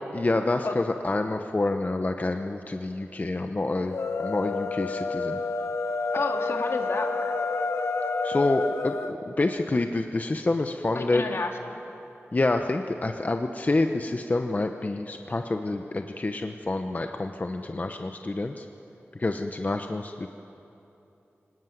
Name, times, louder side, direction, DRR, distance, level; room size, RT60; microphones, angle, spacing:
voice 1, 0.1-5.4 8.2-11.5 12.3-18.7 19.1-20.3, left 2 dB, 35° left, 6 dB, 0.9 m, -27 dB
sound 1, 3.8-9.1, left 3 dB, 90° left, 1.5 m, -29 dB
voice 2, 6.1-7.3 10.9-11.8, left 3 dB, 70° left, 3 dB, 2.3 m, -31 dB
24.0 x 18.5 x 9.5 m, 2.9 s
wide cardioid pair, 75°, 4 cm